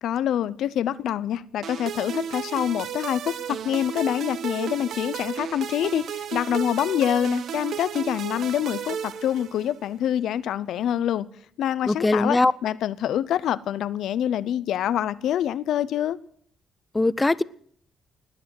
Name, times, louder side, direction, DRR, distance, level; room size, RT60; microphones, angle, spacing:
voice 1, 0.0-11.3 11.6-16.2, left 10 dB, 75° left, 0.6 m, -26 dB
sound 1, 1.6-9.9, right 8 dB, 65° right, 1.0 m, -33 dB
voice 2, 11.9-12.5 16.9-17.4, left 2 dB, 20° left, 0.6 m, -20 dB
19.0 x 8.8 x 7.7 m
cardioid pair, 90°, 0 cm